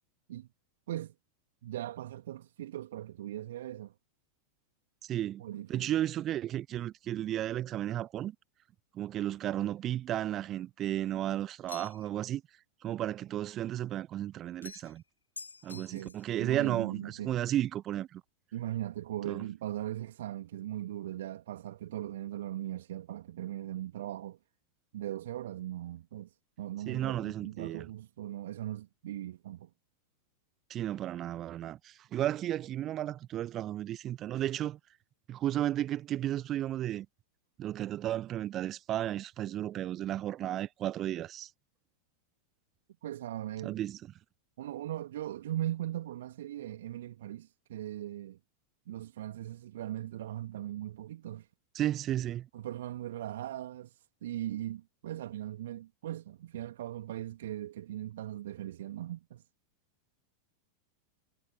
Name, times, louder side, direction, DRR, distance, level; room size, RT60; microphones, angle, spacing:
voice 1, 1.6-3.9 5.4-5.9 15.7-17.4 18.5-24.4 24.9-29.7 43.0-43.8 44.6-48.4 48.9-51.5 52.5-59.4, right 13 dB, 60° right, 2.9 m, -39 dB
voice 2, 5.1-5.4 5.7-8.3 8.9-12.4 12.8-15.0 15.6-18.2 19.2-19.5 26.9-27.9 30.7-34.8 35.3-37.1 37.6-41.5 43.6-44.0 51.7-52.5, right 12 dB, 30° right, 1.0 m, -33 dB
sound 1, 11.7-12.2 14.6-15.0 15.4-16.3, left 4 dB, 80° left, 3.1 m, -47 dB
figure-of-eight pair, 90°, 0 cm